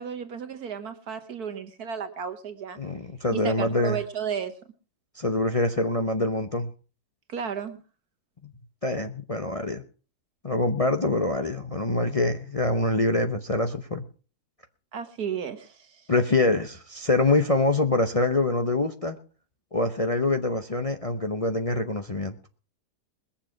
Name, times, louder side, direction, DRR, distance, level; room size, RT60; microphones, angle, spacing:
voice 1, 0.0-2.8 3.3-4.6 7.3-7.8 14.9-16.0, right 7 dB, 70° right, 9 dB, 2.0 m, -33 dB
voice 2, 2.8-4.0 5.1-6.7 8.8-9.8 10.4-14.0 16.1-19.2 19.7-22.4, left 2 dB, 30° left, 6 dB, 0.7 m, -25 dB
21.5 x 7.2 x 5.9 m, 0.38 s
omnidirectional pair, 1.7 m